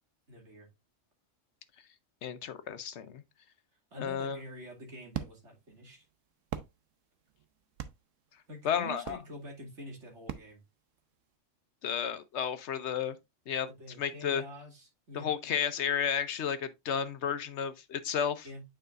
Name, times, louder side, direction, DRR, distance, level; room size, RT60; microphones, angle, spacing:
voice 1, 0.3-0.7 3.9-6.0 8.5-10.6 13.7-15.3 18.4-18.6, equal, 70° right, 2.8 m, -47 dB
voice 2, 2.2-3.2 4.0-4.4 8.6-9.2 11.8-13.2 13.5-13.7 14.0-14.4 15.1-18.5, left 8 dB, 65° left, 1.0 m, -32 dB
sound 1, 4.4-11.4, right 10 dB, 90° right, 1.1 m, -45 dB
9.1 x 5.0 x 2.5 m
omnidirectional pair, 1.3 m